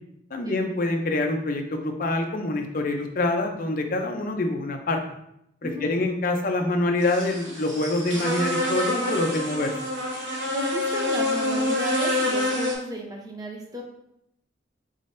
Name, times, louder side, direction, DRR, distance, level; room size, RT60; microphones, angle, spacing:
voice 1, 0.3-5.0 5.6-9.7, left 2 dB, 45° left, 4 dB, 0.5 m, -26 dB
voice 2, 5.6-5.9 10.5-13.8, right 1 dB, 20° right, 0 dB, 0.7 m, -33 dB
sound 1, 7.0-12.7, left 1 dB, 80° right, 1.1 m, -27 dB
4.1 x 3.8 x 2.6 m, 0.77 s
head